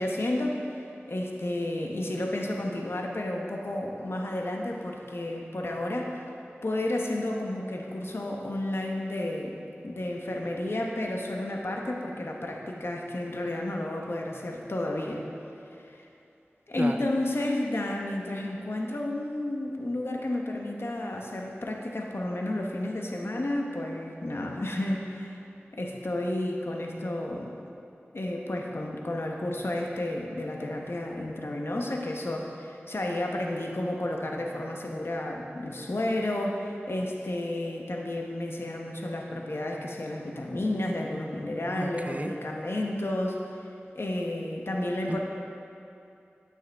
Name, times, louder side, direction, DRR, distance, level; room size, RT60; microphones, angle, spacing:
voice 1, 0.0-6.3 6.6-9.6 9.8-15.2 15.7-16.1 16.7-25.4 25.7-27.5 28.1-43.7 43.9-45.2, left 1 dB, 65° left, 0 dB, 1.0 m, -31 dB
voice 2, 41.7-42.3 45.1-45.2, right 1 dB, 35° right, 6 dB, 0.5 m, -33 dB
12.0 x 6.5 x 3.5 m, 2.7 s
wide cardioid pair, 45°, 4 cm